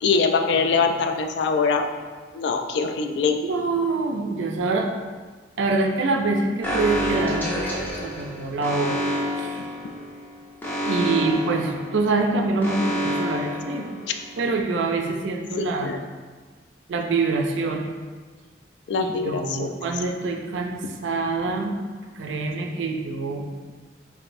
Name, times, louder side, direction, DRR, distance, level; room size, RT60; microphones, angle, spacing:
voice 1, 0.0-1.9 2.3-3.4 15.6-16.0 18.9-19.8, left 5 dB, 70° left, 6 dB, 0.3 m, -23 dB
voice 2, 3.4-4.9 5.6-9.0 9.4-9.7 10.9-13.9 14.4-15.9 16.9-17.9 19.0-21.8 22.1-23.5, right 3 dB, 85° right, 3 dB, 0.4 m, -25 dB
Alarm, 6.6-14.4, equal, 10° left, 0.5 m, -28 dB
4.8 x 2.6 x 2.6 m, 1.4 s
head